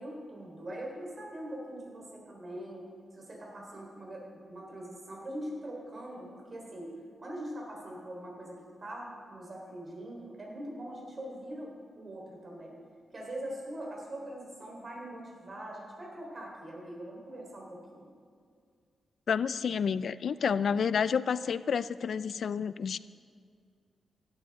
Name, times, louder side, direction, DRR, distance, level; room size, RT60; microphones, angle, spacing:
voice 1, 0.0-2.9 3.1-12.8 13.1-18.1, right 1 dB, 40° right, -2 dB, 4.0 m, -42 dB
voice 2, 19.3-23.0, left 6 dB, 65° left, 16 dB, 0.4 m, -29 dB
17.0 x 13.0 x 3.7 m, 2.1 s
wide cardioid pair, 115°, 0 cm